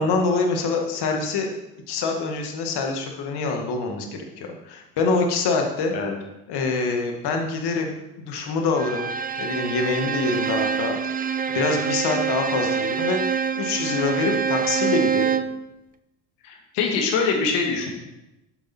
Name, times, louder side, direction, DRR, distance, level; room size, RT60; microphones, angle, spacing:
voice 1, 0.0-1.5 1.9-4.1 4.4-5.9 6.5-9.1 9.4-11.0 11.5-15.3, left 4 dB, 65° left, 3 dB, 2.0 m, -25 dB
Bowed string instrument, 8.8-15.6, right 6 dB, 20° right, 0.5 m, -25 dB
voice 2, 16.4-17.9, left 4 dB, 80° left, 2 dB, 2.1 m, -23 dB
8.0 x 7.7 x 4.4 m, 0.93 s
hypercardioid pair, 75°, 43 cm